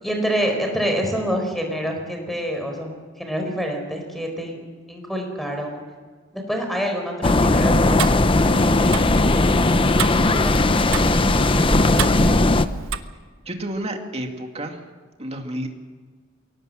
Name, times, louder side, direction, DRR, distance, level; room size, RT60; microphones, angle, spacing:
voice 1, 0.0-4.6 4.9-5.8 6.3-10.6 10.9-12.4, equal, ahead, 3 dB, 4.6 m, -28 dB
sound 1, 7.2-12.7, left 2 dB, 25° left, 0.7 m, -18 dB
Tick-tock, 7.7-13.0, right 4 dB, 90° right, 1.1 m, -30 dB
voice 2, 13.5-14.8 15.2-15.7, right 1 dB, 30° right, 3 dB, 2.3 m, -30 dB
22.5 x 18.0 x 7.9 m, 1.5 s
head